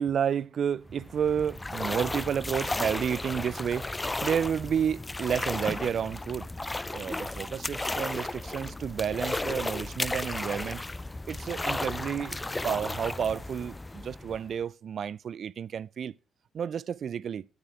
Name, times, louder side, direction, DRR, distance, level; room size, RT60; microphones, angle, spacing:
voice 1, 0.0-3.9 4.2-6.5 6.9-10.8 11.3-12.4 12.6-16.1 16.5-17.5, right 8 dB, 60° right, 0.4 m, -31 dB
sound 1, 0.9-14.6, left 2 dB, 20° left, 0.5 m, -34 dB
9.9 x 8.5 x 3.3 m
supercardioid pair, 55°, 0 cm